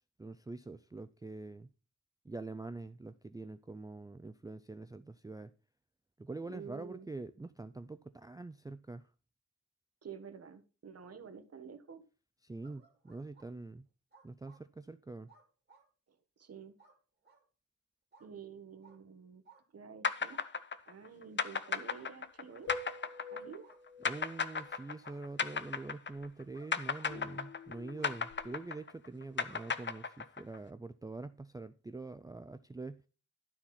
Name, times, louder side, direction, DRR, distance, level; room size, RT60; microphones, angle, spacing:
voice 1, 0.2-1.7 2.2-5.5 6.2-9.1 12.4-13.9 14.2-15.3 24.0-33.0, right 3 dB, 15° right, 0.4 m, -45 dB
voice 2, 6.4-7.1 10.0-12.0 16.1-16.7 18.2-19.4 19.7-20.4 20.9-22.7 23.3-23.7, right 6 dB, 55° right, 1.3 m, -49 dB
sound 1, 12.6-13.5 14.1-14.6 15.3-15.9 16.8-17.0 17.2-17.4 18.1-18.3 18.8-19.0 19.4-19.6 20.3-20.5 21.5-22.1 22.7-22.9 23.6-23.8 24.2-24.4 25.0-25.2 26.5-26.7 27.0-27.5 28.0-28.1 29.5-30.0, right 5 dB, 35° right, 2.7 m, -61 dB
sound 2, 20.0-26.4 26.7-30.6, left 5 dB, 40° left, 0.7 m, -35 dB
sound 3, 22.7-24.9 27.1-28.6, left 3 dB, 80° left, 2.8 m, -48 dB
12.5 x 4.3 x 5.8 m
wide cardioid pair, 140°, 29 cm